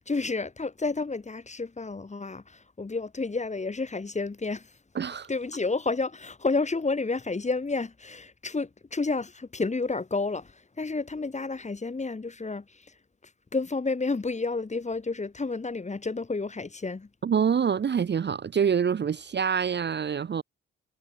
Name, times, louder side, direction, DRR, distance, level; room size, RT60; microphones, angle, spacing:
voice 1, 0.0-4.7 5.3-12.9 13.5-17.1, left 3 dB, 25° left, 2.0 m, -30 dB
voice 2, 4.9-5.3 17.2-20.4, right 7 dB, 40° right, 0.9 m, -26 dB
hypercardioid pair, 50°, 29 cm